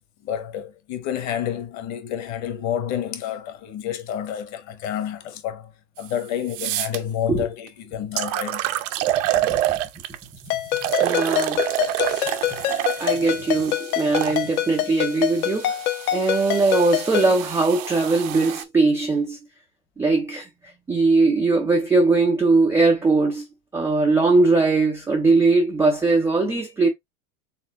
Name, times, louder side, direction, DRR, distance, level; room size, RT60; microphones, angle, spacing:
voice 1, 0.2-5.7 6.0-8.7 10.9-11.1 11.8-12.3, left 10 dB, 40° left, 1.1 m, -29 dB
sound 1, 6.0-6.1 6.5-7.0 7.7-7.8 8.2-10.2 10.8-14.4 15.2-18.6, right 14 dB, 55° right, 0.7 m, -27 dB
voice 2, 9.0-9.6 11.0-11.6 13.0-15.8 16.1-19.4 20.0-20.5 20.9-23.4 23.7-26.9, right 3 dB, 5° right, 0.3 m, -20 dB
Ringtone, 10.5-17.4, left 13 dB, 65° left, 1.0 m, -26 dB
4.2 x 3.4 x 2.8 m
supercardioid pair, 125°, 44 cm